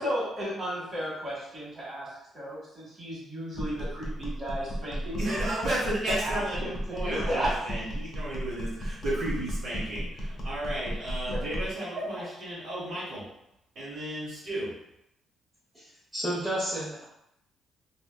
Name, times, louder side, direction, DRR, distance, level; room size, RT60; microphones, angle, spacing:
voice 1, 0.0-2.1 2.3-5.7 6.1-7.5 11.2-11.4, equal, 35° right, -6 dB, 1.4 m, -34 dB
sound 1, 3.5-11.8, equal, 40° left, 0.6 m, -34 dB
voice 2, 5.2-6.6 6.9-13.2 13.7-14.7, right 1 dB, 70° right, -10 dB, 1.4 m, -33 dB
voice 3, 15.7-17.1, right 1 dB, 15° right, -8 dB, 0.7 m, -32 dB
2.6 x 2.2 x 2.2 m, 0.81 s
cardioid pair, 90°, 0 cm